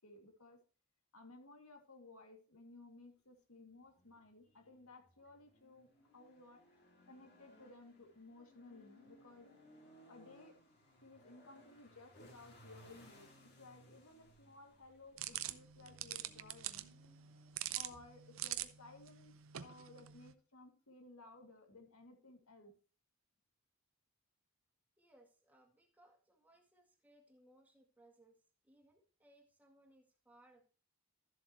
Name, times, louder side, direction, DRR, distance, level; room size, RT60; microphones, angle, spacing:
voice 1, 0.0-0.6 1.1-6.6 7.1-9.5 10.1-10.5 11.0-16.8 17.7-22.7, left 2 dB, 85° left, 3 dB, 2.4 m, -58 dB
sound 1, 3.7-20.3, left 1 dB, 50° left, 2.4 m, -65 dB
sound 2, 15.2-20.3, right 13 dB, 70° right, 0.6 m, -45 dB
voice 2, 25.0-28.4 28.6-30.7, right 1 dB, 10° right, 1 dB, 2.0 m, -67 dB
13.0 x 7.3 x 3.0 m, 0.37 s
head